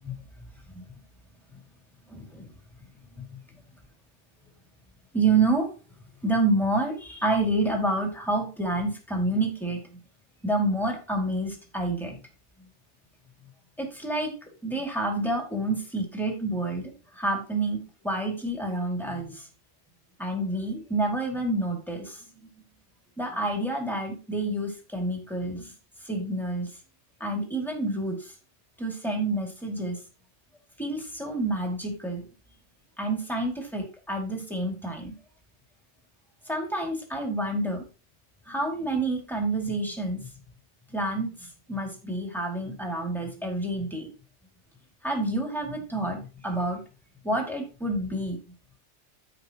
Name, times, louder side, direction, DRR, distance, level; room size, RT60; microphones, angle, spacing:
voice 1, 2.1-2.5 3.2-3.4 5.1-5.7 6.2-9.8 10.4-12.2 13.8-14.3 14.6-19.4 20.2-22.2 23.2-25.6 26.1-26.7 27.2-28.2 28.8-30.0 30.8-32.2 33.0-35.1 36.5-37.8 38.5-40.3 40.9-44.1 45.0-46.8 47.2-48.4, right 2 dB, ahead, 0 dB, 2.3 m, -28 dB
14.0 x 5.0 x 3.0 m, 0.33 s
omnidirectional pair, 1.2 m